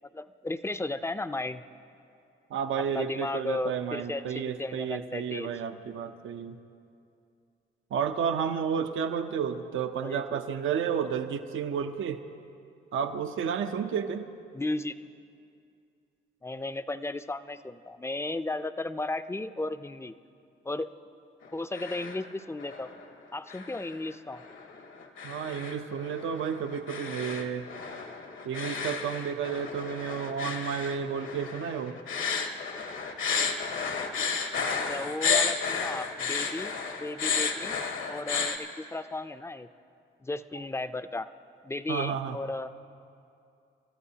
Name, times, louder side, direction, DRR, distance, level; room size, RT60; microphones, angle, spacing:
voice 1, 0.1-1.6 2.8-5.6 10.0-10.4 14.5-14.9 16.4-20.2 20.6-20.9 21.5-22.9 23.3-24.4 34.7-36.7 37.0-37.8 38.1-39.7 40.2-41.3 41.6-42.7, left 2 dB, 10° left, 11 dB, 0.5 m, -35 dB
voice 2, 2.5-6.6 7.9-12.2 12.9-14.3 25.2-27.7 28.4-32.0 41.9-42.4, right 7 dB, 70° right, 7 dB, 0.7 m, -31 dB
sound 1, 21.4-22.3 22.6-23.0 23.5-38.6, left 5 dB, 70° left, 1.3 m, -32 dB
29.0 x 13.5 x 2.8 m, 2.5 s
cardioid pair, 70°, 21 cm